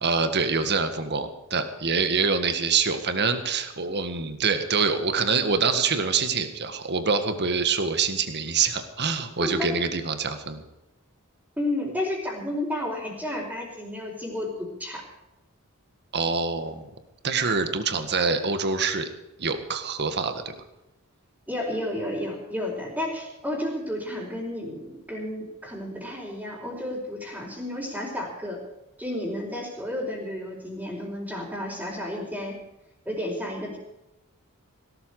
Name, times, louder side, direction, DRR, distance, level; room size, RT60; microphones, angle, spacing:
voice 1, 0.0-10.6 16.1-16.9 17.2-19.1 19.4-20.5, right 5 dB, 50° right, 9 dB, 1.8 m, -25 dB
voice 2, 9.4-9.7 11.6-15.0 21.5-28.6 29.0-32.6 33.1-33.8, left 1 dB, 5° right, -8 dB, 4.2 m, -32 dB
17.5 x 13.0 x 4.9 m, 0.92 s
head